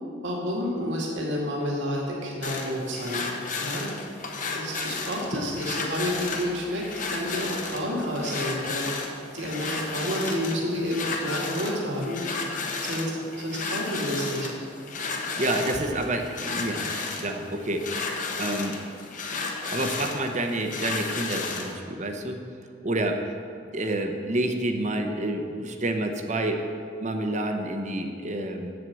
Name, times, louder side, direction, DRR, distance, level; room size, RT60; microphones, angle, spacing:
voice 1, 0.2-3.3 3.6-3.9 4.5-12.2 12.8-14.5, equal, 75° right, -2 dB, 2.3 m, -30 dB
sound 1, 2.4-21.8, left 4 dB, 45° left, 1.2 m, -33 dB
voice 2, 15.4-17.9 18.4-18.8 19.7-22.4 22.8-23.2 23.7-26.6 27.0-28.7, right 1 dB, 40° right, 5 dB, 0.9 m, -28 dB
8.4 x 7.8 x 7.6 m, 2.4 s
head